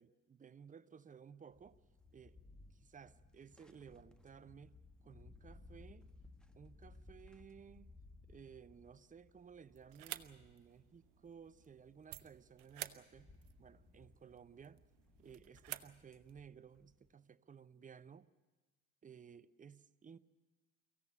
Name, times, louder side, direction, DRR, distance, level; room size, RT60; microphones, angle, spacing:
voice 1, 0.0-1.8 2.1-2.4 2.7-4.8 5.0-6.1 6.5-7.9 8.3-13.3 13.6-14.8 15.2-18.3 19.0-20.2, right 7 dB, 15° right, 0.7 m, -57 dB
sound 1, 1.5-17.1, left 3 dB, ahead, 1.5 m, -62 dB
sound 2, 9.7-16.4, right 15 dB, 55° right, 1.1 m, -52 dB
24.0 x 15.5 x 9.3 m
figure-of-eight pair, 70°, 46 cm